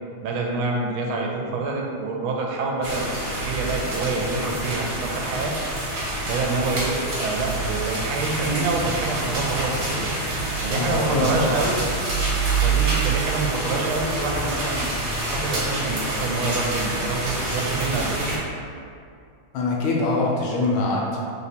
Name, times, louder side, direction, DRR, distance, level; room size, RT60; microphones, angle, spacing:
voice 1, 0.2-5.5 6.2-10.1 10.6-11.8 12.6-14.9 15.3-18.3, right 3 dB, 80° right, 0 dB, 1.4 m, -27 dB
sound 1, 2.8-18.4, right 2 dB, 55° right, 1.4 m, -27 dB
voice 2, 10.7-11.5 19.5-21.2, left 3 dB, 80° left, -2 dB, 1.3 m, -23 dB
3.4 x 2.9 x 4.2 m, 2.4 s
omnidirectional pair, 2.3 m